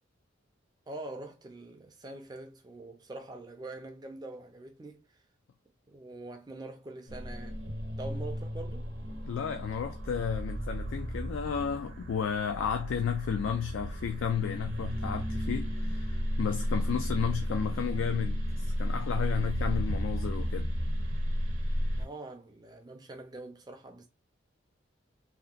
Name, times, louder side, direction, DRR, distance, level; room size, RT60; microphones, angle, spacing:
voice 1, 0.9-5.0 5.9-7.6 8.0-8.9 21.7-24.1, right 2 dB, 20° right, 0.4 m, -44 dB
sound 1, 7.1-22.1, equal, 70° right, 0.7 m, -33 dB
voice 2, 9.2-20.7, left 7 dB, 80° left, 0.3 m, -33 dB
2.8 x 2.1 x 2.3 m
head